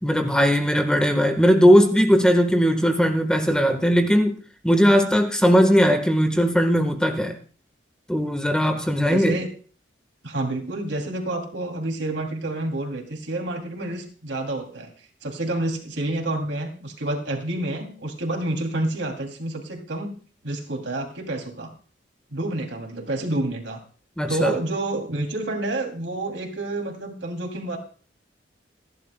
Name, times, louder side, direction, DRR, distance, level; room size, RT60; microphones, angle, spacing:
voice 1, 0.0-4.3 4.6-7.4 8.1-9.4 24.2-24.5, equal, 5° left, 5 dB, 1.3 m, -19 dB
voice 2, 9.0-9.5 10.2-14.9 15.2-20.1 20.4-21.7 22.3-23.8 24.3-27.8, right 2 dB, 80° right, 2 dB, 2.8 m, -29 dB
28.5 x 11.0 x 2.2 m, 0.42 s
head